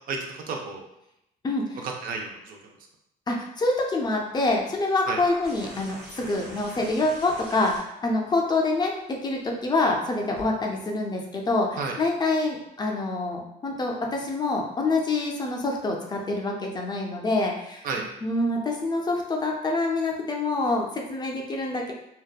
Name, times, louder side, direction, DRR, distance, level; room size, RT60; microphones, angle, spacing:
voice 1, 0.1-0.8 1.8-2.7 5.1-5.2 11.8-11.9 17.8-18.0, right 4 dB, 55° right, 2 dB, 0.5 m, -32 dB
voice 2, 1.4-1.9 3.3-17.9 18.2-21.9, left 2 dB, 25° left, 0 dB, 0.4 m, -26 dB
sound 1, 5.1-10.4 11.8-11.9, right 1 dB, 80° right, 1.1 m, -45 dB
2.7 x 2.1 x 2.3 m, 0.82 s
cardioid pair, 110°, 17 cm